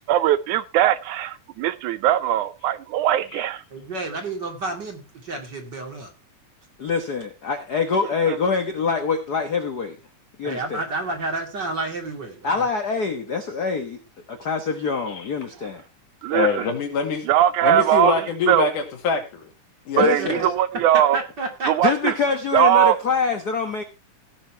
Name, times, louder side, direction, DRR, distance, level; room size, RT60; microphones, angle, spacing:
voice 1, 0.1-3.6 8.3-8.4 16.2-16.7 17.3-18.2 18.5-18.7 20.0-21.2 21.7-22.1 22.5-23.0, right 11 dB, 80° right, 2.1 m, -20 dB
voice 2, 3.7-6.1 10.4-12.7 20.0-20.5 21.1-21.7, right 2 dB, 35° right, 2.7 m, -30 dB
voice 3, 6.8-10.0 10.4-10.8 12.4-14.0 14.3-15.8 20.0-20.4 21.8-23.8, left 5 dB, 60° left, 1.0 m, -25 dB
voice 4, 16.3-17.3 17.6-19.5 19.9-20.1, left 5 dB, 80° left, 3.8 m, -24 dB
16.5 x 6.6 x 4.5 m
omnidirectional pair, 3.6 m